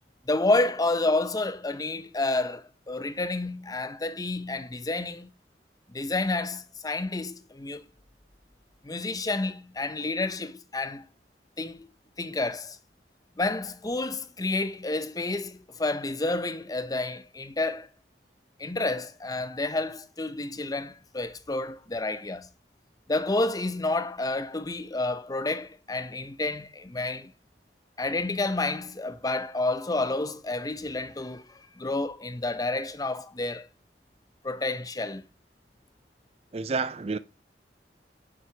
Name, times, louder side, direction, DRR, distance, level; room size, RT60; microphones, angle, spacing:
voice 1, 0.3-5.3 5.9-7.8 8.8-11.0 11.6-11.9 12.2-12.8 13.4-17.9 18.6-22.5 23.1-27.3 28.0-33.7 34.4-35.2, left 2 dB, 20° left, 0.7 m, -30 dB
voice 2, 36.5-37.2, right 4 dB, 35° right, 0.5 m, -29 dB
7.7 x 6.1 x 6.0 m
head